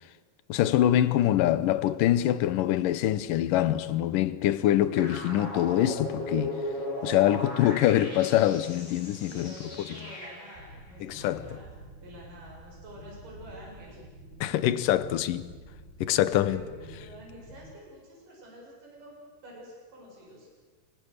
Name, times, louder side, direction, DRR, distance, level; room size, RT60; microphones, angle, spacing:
voice 1, 0.5-6.6 7.0-9.5 11.0-11.4 14.4-15.5 16.0-16.6, left 12 dB, 70° left, 2.3 m, -24 dB
sound 1, 4.9-10.6, left 1 dB, 45° left, 9.1 m, -37 dB
voice 2, 9.3-11.7 12.0-14.0 16.1-20.5, equal, 55° right, 9.6 m, -48 dB
sound 2, 10.5-17.7, right 1 dB, 90° right, 8.9 m, -48 dB
28.5 x 25.5 x 6.7 m
omnidirectional pair, 4.6 m